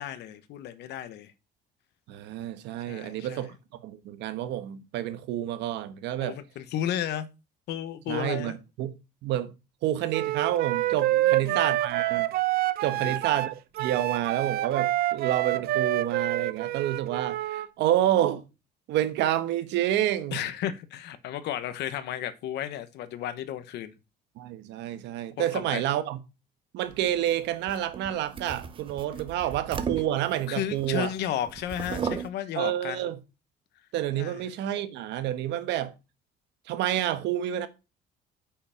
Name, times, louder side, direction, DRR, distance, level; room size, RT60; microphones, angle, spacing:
voice 1, 0.0-1.3 2.9-3.5 6.2-7.3 7.7-8.6 11.1-11.6 12.8-13.2 20.3-23.9 25.4-25.8 30.5-33.1 34.1-34.4, left 10 dB, 75° left, 1.1 m, -33 dB
voice 2, 2.1-3.5 3.8-6.4 8.1-8.5 8.8-8.9 9.2-9.5 9.8-12.3 12.8-18.4 18.9-20.4 24.4-26.2 26.7-31.1 32.6-33.2 33.9-35.9 36.7-37.7, right 12 dB, 90° right, 1.2 m, -29 dB
Wind instrument woodwind instrument, 10.1-17.7, right 15 dB, 60° right, 0.6 m, -27 dB
sound 1, 26.9-31.1 31.5-32.3, right 6 dB, 30° right, 0.9 m, -36 dB
8.6 x 5.7 x 5.8 m
cardioid pair, 160°, 18 cm